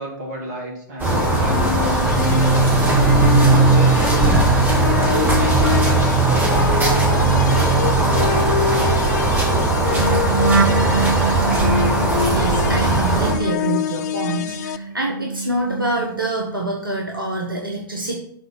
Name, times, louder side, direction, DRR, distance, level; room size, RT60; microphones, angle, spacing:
voice 1, 0.0-2.3 2.9-8.5, right 2 dB, 55° right, -1 dB, 2.3 m, -32 dB
sound 1, 1.0-13.3, right 2 dB, 15° right, 1.6 m, -19 dB
sound 2, 1.1-14.8, left 10 dB, 55° left, 0.4 m, -26 dB
sound 3, 2.0-14.2 14.5-16.6 16.9-17.3, right 4 dB, 70° right, 0.6 m, -22 dB
voice 2, 12.3-18.2, right 2 dB, 85° right, -1 dB, 1.0 m, -26 dB
6.2 x 4.0 x 5.7 m, 0.68 s
figure-of-eight pair, 100°, 11 cm